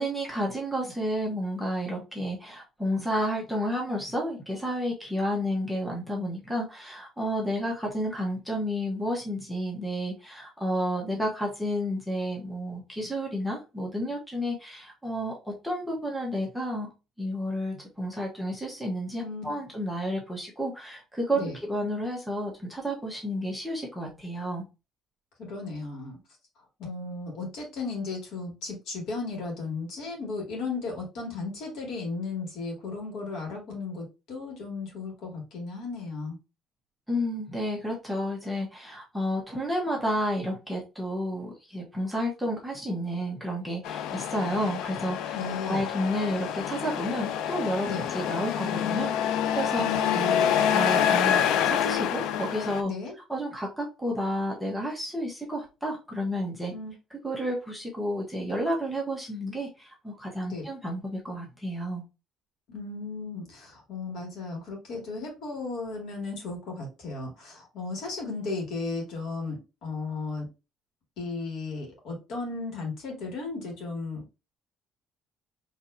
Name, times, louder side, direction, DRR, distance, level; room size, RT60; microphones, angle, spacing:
voice 1, 0.0-16.9 17.2-24.6 37.1-45.4 45.6-52.9 53.3-56.7 57.2-62.0, equal, ahead, -2 dB, 1.1 m, -31 dB
voice 2, 19.2-19.5 21.3-21.6 25.4-26.2 26.8-36.4 45.3-45.8 47.8-48.1 49.8-50.5 52.8-53.1 56.7-56.9 60.5-60.7 62.7-70.5 71.2-74.2, left 3 dB, 65° left, 0 dB, 2.3 m, -35 dB
Truck, 43.8-52.8, left 9 dB, 90° left, 0.4 m, -27 dB
4.6 x 3.4 x 2.7 m, 0.28 s
cardioid pair, 165°, 0 cm